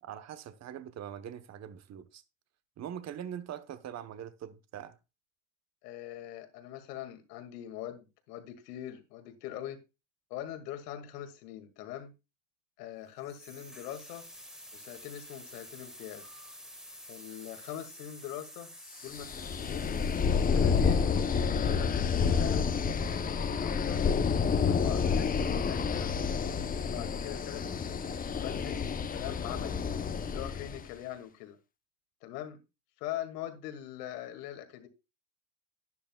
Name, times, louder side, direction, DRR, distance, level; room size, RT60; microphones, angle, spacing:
voice 1, 0.0-2.2 2.8-5.0, right 9 dB, 35° right, 1.0 m, -42 dB
voice 2, 5.8-9.8 10.3-12.1 12.8-14.2 14.7-16.2 17.1-18.7 19.0-19.9 20.5-21.1 21.4-22.7 23.1-24.1 24.6-26.1 26.8-29.9 30.3-31.6 32.2-32.6 33.0-34.9, left 12 dB, 80° left, 2.2 m, -42 dB
sound 1, 13.2-22.1, equal, ahead, 1.6 m, -50 dB
sound 2, 19.1-30.8, left 6 dB, 20° left, 0.7 m, -29 dB
12.0 x 10.5 x 2.3 m
supercardioid pair, 105°, 47 cm